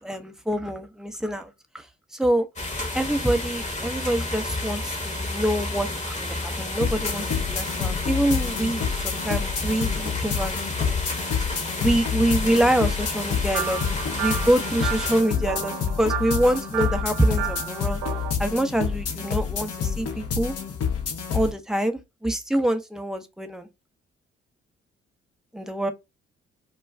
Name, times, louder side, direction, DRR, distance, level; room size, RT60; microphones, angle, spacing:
voice 1, 0.0-1.9 2.1-2.5 2.9-10.5 11.8-13.8 14.1-18.0 18.4-20.5 21.3-23.7 25.5-25.9, right 1 dB, ahead, 0.6 m, -25 dB
sound 1, 2.6-15.2, left 2 dB, 25° left, 0.9 m, -31 dB
sound 2, 6.8-21.5, left 7 dB, 55° left, 0.7 m, -28 dB
sound 3, 13.5-18.3, right 10 dB, 65° right, 0.7 m, -32 dB
2.3 x 2.2 x 3.3 m
hypercardioid pair, 40°, 30 cm